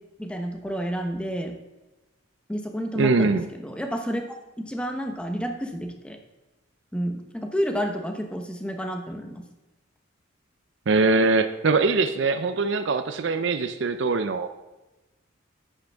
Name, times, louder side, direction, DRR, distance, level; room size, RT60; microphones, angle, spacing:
voice 1, 0.2-1.5 2.5-4.2 4.6-6.2 6.9-9.4, equal, 5° left, 4 dB, 0.9 m, -30 dB
voice 2, 3.0-3.5 10.9-14.5, right 3 dB, 65° right, 9 dB, 0.5 m, -22 dB
11.5 x 8.7 x 3.5 m, 1.1 s
head